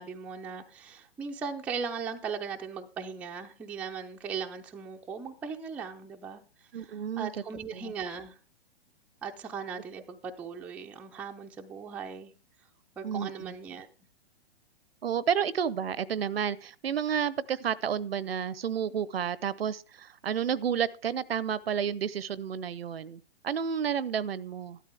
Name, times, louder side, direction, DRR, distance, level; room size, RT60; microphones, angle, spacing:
voice 1, 0.0-6.4 6.7-8.4 9.2-12.3 13.0-13.9, right 6 dB, 5° right, 2 dB, 0.5 m, -38 dB
voice 2, 6.7-7.3 7.7-7.9 13.0-13.5 15.0-24.8, right 8 dB, 65° right, 21 dB, 0.7 m, -31 dB
13.5 x 12.0 x 3.4 m, 0.34 s
figure-of-eight pair, 120°, 33 cm